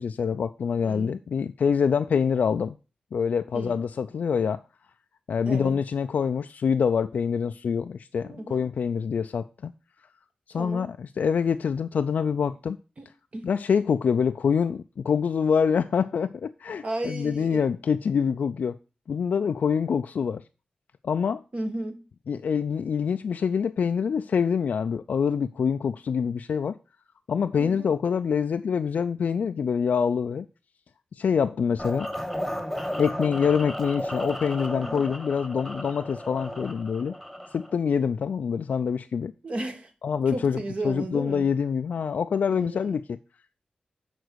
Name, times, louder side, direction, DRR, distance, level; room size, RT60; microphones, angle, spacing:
voice 1, 0.0-2.8 3.1-4.6 5.3-9.7 10.5-12.8 13.4-18.8 19.1-20.4 21.0-21.4 22.3-26.8 27.3-30.5 31.1-32.1 33.0-37.1 37.5-39.3 40.0-43.2, left 6 dB, 75° left, 0.3 m, -25 dB
voice 2, 0.8-1.2 3.5-3.8 5.4-5.8 8.2-8.7 10.6-10.9 13.0-13.1 13.3-13.5 16.8-17.6 21.5-22.1 27.6-27.9 34.8-35.0 39.4-39.9 40.3-41.5 42.5-43.0, right 2 dB, 45° right, 1.5 m, -34 dB
sound 1, 31.8-37.7, equal, ahead, 1.5 m, -34 dB
6.7 x 4.0 x 6.2 m
cardioid pair, 60°, 3 cm